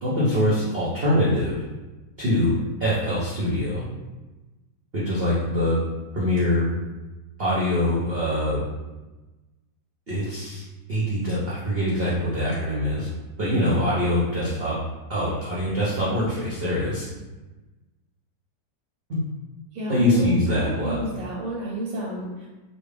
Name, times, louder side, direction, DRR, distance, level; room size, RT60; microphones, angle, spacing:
voice 1, 0.0-1.6 2.2-3.8 4.9-5.8 6.1-6.7 7.4-8.6 10.1-10.6 10.9-13.1 13.4-14.8 15.1-17.1 19.1-19.2 19.9-21.0, left 1 dB, 60° right, -8 dB, 0.6 m, -23 dB
voice 2, 19.7-22.5, right 1 dB, 85° right, -4 dB, 1.4 m, -31 dB
4.1 x 2.1 x 3.3 m, 1.1 s
omnidirectional pair, 2.0 m